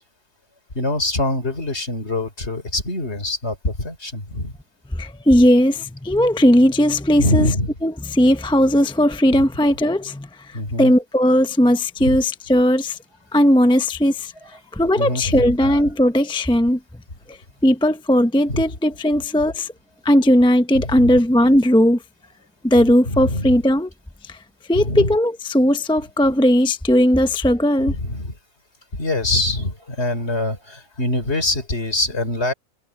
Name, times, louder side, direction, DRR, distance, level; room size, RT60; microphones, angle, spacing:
voice 1, 0.7-4.5 7.2-7.7 10.5-10.9 12.0-12.2 15.0-15.8 18.5-18.6 20.9-21.2 23.1-23.5 24.8-25.1 27.9-28.3 29.0-32.5, left 1 dB, 45° left, 4.0 m, -24 dB
voice 2, 4.9-7.5 7.8-13.0 13.3-14.3 14.7-16.8 17.3-17.4 17.6-19.7 20.0-22.0 22.6-23.9 24.2-24.4 24.7-27.9, equal, 5° left, 0.6 m, -17 dB
omnidirectional pair, 1.5 m